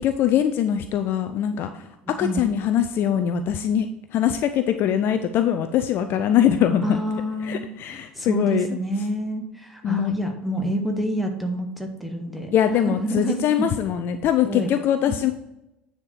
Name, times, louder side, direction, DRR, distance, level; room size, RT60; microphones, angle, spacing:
voice 1, 0.0-3.9 4.1-6.8 7.4-8.7 9.8-10.1 12.5-15.3, left 10 dB, 45° left, 9 dB, 0.5 m, -22 dB
voice 2, 6.8-13.4 14.4-14.7 15.1-15.2, right 1 dB, ahead, 2 dB, 1.6 m, -28 dB
9.6 x 4.4 x 4.7 m, 0.92 s
figure-of-eight pair, 70°, 5 cm